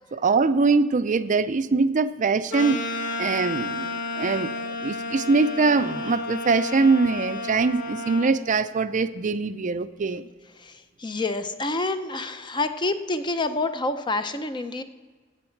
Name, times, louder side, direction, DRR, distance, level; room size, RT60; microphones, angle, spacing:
voice 1, 0.1-10.3, right 4 dB, 40° right, 12 dB, 0.5 m, -23 dB
sound 1, 2.5-8.3, left 3 dB, 65° left, 1.1 m, -32 dB
voice 2, 10.6-14.8, left 2 dB, 25° left, 10 dB, 0.6 m, -28 dB
16.0 x 7.9 x 4.5 m, 1.5 s
head